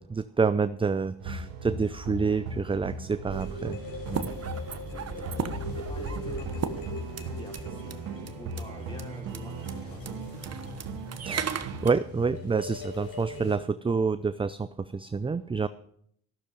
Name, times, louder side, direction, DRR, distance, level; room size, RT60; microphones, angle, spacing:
voice 1, 0.0-3.8 4.1-4.3 11.2-11.6 11.8-15.7, right 5 dB, 15° right, 13 dB, 0.5 m, -28 dB
sound 1, 1.2-12.0, right 3 dB, 80° right, 1.9 m, -38 dB
sound 2, 3.3-13.6, left 1 dB, 50° left, 4.4 m, -41 dB
sound 3, 4.1-7.6 7.9-8.0 8.3-8.6 9.0-9.1 9.3-9.4 9.7-9.8 10.1-11.9, right 7 dB, 35° right, 1.2 m, -36 dB
voice 2, 4.9-7.9 8.2-10.2, equal, 10° left, 0 dB, 5.1 m, -47 dB
14.0 x 6.7 x 9.2 m, 0.67 s
hypercardioid pair, 65°, 43 cm